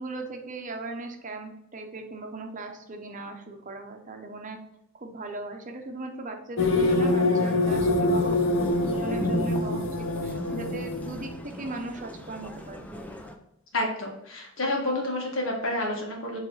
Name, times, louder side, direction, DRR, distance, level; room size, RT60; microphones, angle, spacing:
voice 1, 0.0-4.6 5.0-12.9, right 2 dB, 40° right, 4 dB, 0.8 m, -38 dB
sound 1, 6.6-11.4, left 2 dB, 90° left, 0.7 m, -25 dB
sound 2, 8.1-13.4, left 1 dB, 10° left, 0.5 m, -40 dB
voice 2, 13.7-16.4, left 1 dB, 70° left, 0 dB, 1.7 m, -29 dB
7.7 x 3.3 x 4.0 m, 0.80 s
head